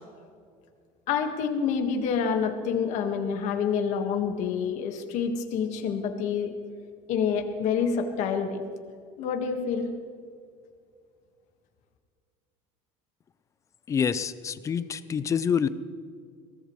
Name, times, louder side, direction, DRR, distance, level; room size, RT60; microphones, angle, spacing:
voice 1, 1.1-6.5 7.1-8.6 9.2-9.9, left 6 dB, 55° left, 4 dB, 1.7 m, -27 dB
voice 2, 13.9-15.7, left 7 dB, 20° left, 14 dB, 0.5 m, -27 dB
23.0 x 17.5 x 3.2 m, 2.2 s
cardioid pair, 170°, 14 cm